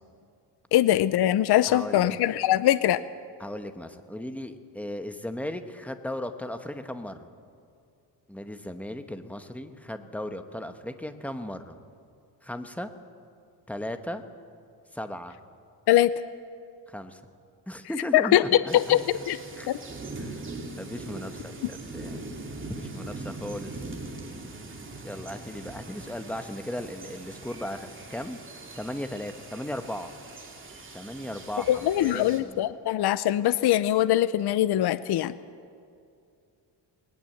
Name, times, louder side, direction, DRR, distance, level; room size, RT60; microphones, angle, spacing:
voice 1, 0.7-3.0 15.9-16.1 18.1-18.4 18.7-19.4 19.7-19.8 31.7-35.3, left 13 dB, 65° left, 14 dB, 0.7 m, -22 dB
voice 2, 1.7-2.1 3.4-7.3 8.3-11.8 12.4-12.9 13.7-14.2 14.9-15.3 16.9-17.2 17.7-19.2 19.6-19.7 20.2-20.4 20.8-22.2 22.8-23.8 25.0-28.4 28.8-30.1 30.9-32.7, left 1 dB, 5° left, 8 dB, 1.1 m, -36 dB
sound 1, 18.7-32.4, right 2 dB, 25° right, 2.7 m, -41 dB
20.0 x 19.0 x 7.8 m, 2.5 s
cardioid pair, 140°, 43 cm